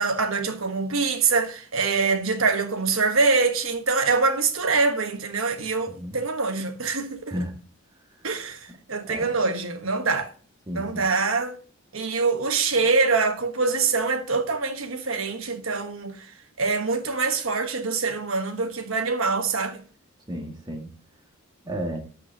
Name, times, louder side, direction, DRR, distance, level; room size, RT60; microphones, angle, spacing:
voice 1, 0.0-7.3 8.2-10.3 10.7-11.6 11.9-16.3 16.6-19.8, right 4 dB, 80° right, 1.2 m, -24 dB
voice 2, 5.9-6.2 7.3-7.6 9.0-9.4 10.7-11.1 20.3-20.9 21.6-22.0, equal, 20° right, 1.8 m, -33 dB
12.0 x 5.7 x 2.8 m
head